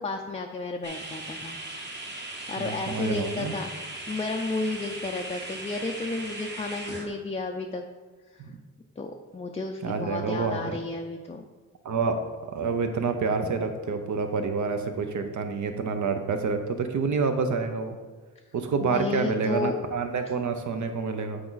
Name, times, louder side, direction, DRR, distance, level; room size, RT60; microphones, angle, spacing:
voice 1, 0.0-1.6 2.5-7.8 8.3-8.4 9.0-11.5 18.8-19.8, left 3 dB, 20° left, 2 dB, 0.4 m, -32 dB
sound 1, 0.8-7.1, right 2 dB, 30° right, 1.2 m, -38 dB
voice 2, 2.6-3.5 9.8-10.7 11.8-12.2 12.5-18.0 18.5-21.4, right 4 dB, 65° right, 7 dB, 0.8 m, -28 dB
8.4 x 4.7 x 4.0 m, 1.4 s
wide cardioid pair, 130°, 32 cm